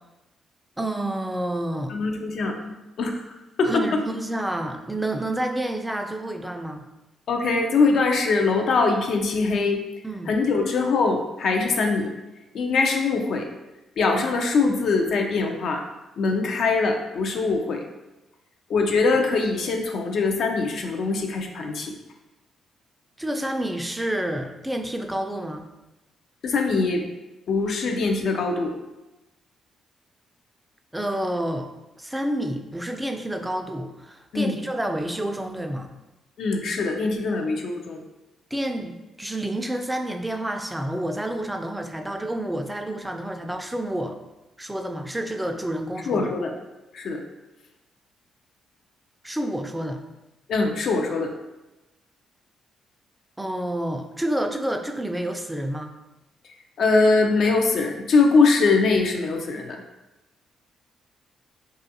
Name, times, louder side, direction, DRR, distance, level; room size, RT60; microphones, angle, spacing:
voice 1, 0.8-1.9 3.7-6.9 10.0-10.3 23.2-25.7 30.9-31.7 32.0-35.9 38.5-44.2 44.6-46.3 49.2-50.0 53.4-55.9, right 1 dB, 10° right, 5 dB, 0.3 m, -29 dB
voice 2, 1.9-3.2 3.6-4.0 7.3-9.8 10.3-12.1 12.5-13.5 14.0-15.9 16.2-17.8 18.7-21.9 26.4-27.1 27.5-28.7 34.3-34.6 36.4-38.0 46.1-46.5 46.9-47.2 50.5-51.3 56.8-59.8, left 3 dB, 65° left, 3 dB, 0.4 m, -22 dB
2.4 x 2.3 x 2.6 m, 1.0 s
hypercardioid pair, 50°, 0 cm